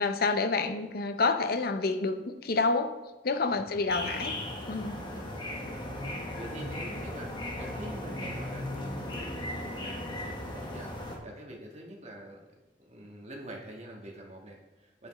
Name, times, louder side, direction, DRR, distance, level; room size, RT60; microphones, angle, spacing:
voice 1, 0.0-2.9 3.2-4.4 4.7-5.0, left 3 dB, 60° left, 8 dB, 0.6 m, -28 dB
sound 1, 3.9-11.2, left 1 dB, 25° left, 1.2 m, -37 dB
voice 2, 5.1-12.6 12.9-15.1, right 1 dB, 40° right, -1 dB, 1.4 m, -46 dB
8.8 x 7.7 x 3.1 m, 1.0 s
head